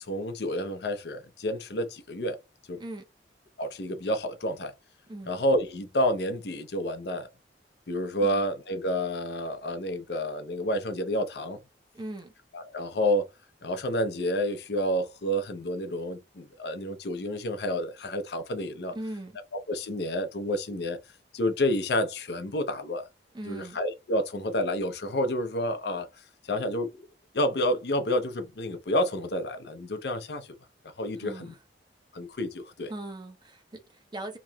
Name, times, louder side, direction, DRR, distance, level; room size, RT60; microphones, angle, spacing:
voice 1, 0.1-2.4 2.7-2.8 3.6-4.7 5.3-7.3 7.9-11.6 12.5-13.3 13.6-18.9 19.7-21.0 21.3-23.1 23.5-26.1 26.4-26.9 27.3-30.5 31.0-31.5 32.1-32.9, equal, 65° left, 0.6 m, -29 dB
voice 2, 11.9-12.3 18.9-19.3 23.3-23.8 31.2-31.6 32.9-34.4, right 1 dB, 25° right, 0.6 m, -39 dB
2.9 x 2.9 x 2.3 m
head